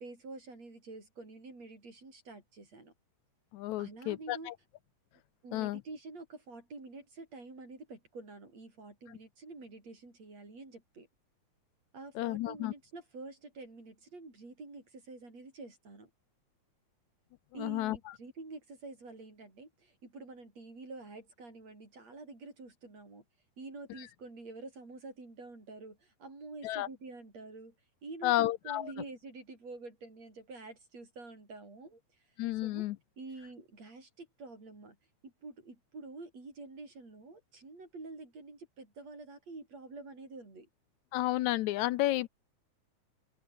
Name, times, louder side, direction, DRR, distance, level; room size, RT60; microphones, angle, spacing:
voice 1, 0.0-2.9 3.8-4.5 5.4-11.1 11.9-16.1 17.5-23.2 23.6-27.7 28.0-32.0 32.6-35.0 35.2-40.7, right 3 dB, 60° right, 8.9 m, -48 dB
voice 2, 3.5-4.5 5.5-5.8 12.2-12.7 17.6-18.0 26.6-26.9 28.2-28.9 32.4-33.0 41.1-42.3, left 16 dB, 80° left, 2.0 m, -31 dB
open air
omnidirectional pair, 3.4 m